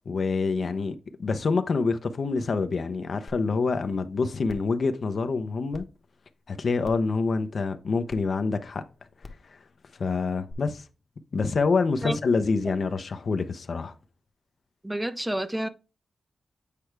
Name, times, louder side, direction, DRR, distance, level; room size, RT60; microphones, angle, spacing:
voice 1, 0.1-5.8 6.5-8.8 10.0-10.8 11.3-13.9, left 4 dB, 60° left, 0.8 m, -26 dB
sound 1, 3.3-3.4 3.8-3.9 4.5-4.7 5.7-5.8 6.8-7.1 8.1-8.2 9.2-9.4 10.5-10.6, left 3 dB, 40° left, 1.1 m, -43 dB
voice 2, 14.8-15.7, right 1 dB, 10° right, 0.6 m, -29 dB
8.4 x 4.7 x 3.3 m
wide cardioid pair, 95°, 0 cm